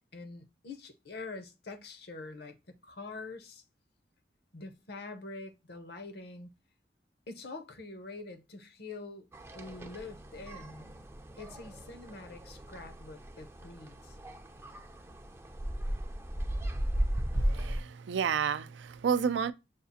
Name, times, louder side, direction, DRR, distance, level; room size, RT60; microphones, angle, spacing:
voice 1, 0.1-3.6 4.5-6.5 7.3-9.3 9.5-11.1 11.4-14.2, left 3 dB, 60° left, 0.7 m, -45 dB
sound 1, 9.3-17.8, right 1 dB, 15° right, 0.4 m, -36 dB
voice 2, 17.3-19.5, right 7 dB, 85° right, 0.4 m, -31 dB
6.5 x 2.4 x 2.7 m
head